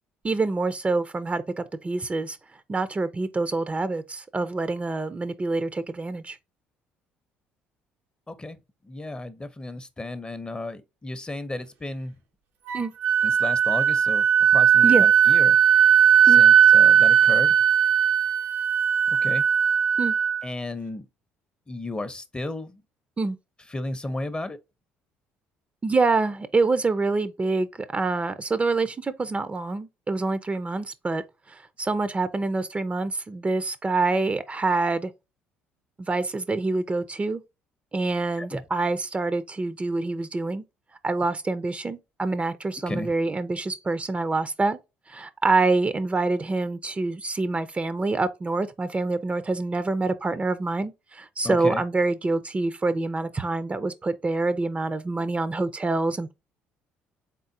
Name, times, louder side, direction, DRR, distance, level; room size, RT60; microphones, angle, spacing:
voice 1, 0.2-2.4 2.7-6.4 12.7-12.9 14.8-15.1 16.3-16.4 20.0-20.1 23.2-23.4 25.8-27.7 27.9-31.2 31.5-35.1 36.0-37.4 37.9-40.6 41.0-44.8 45.1-56.3, right 3 dB, 25° right, 0.6 m, -26 dB
voice 2, 8.9-12.1 13.2-14.2 14.5-15.6 16.4-17.6 19.2-19.4 20.4-21.1 21.7-22.7 23.7-24.6 38.4-38.6 42.9-43.1 51.4-51.8, left 2 dB, 20° left, 0.7 m, -33 dB
Wind instrument woodwind instrument, 12.7-20.4, right 8 dB, 80° right, 1.0 m, -18 dB
3.9 x 3.7 x 2.7 m
hypercardioid pair, 60°, 5 cm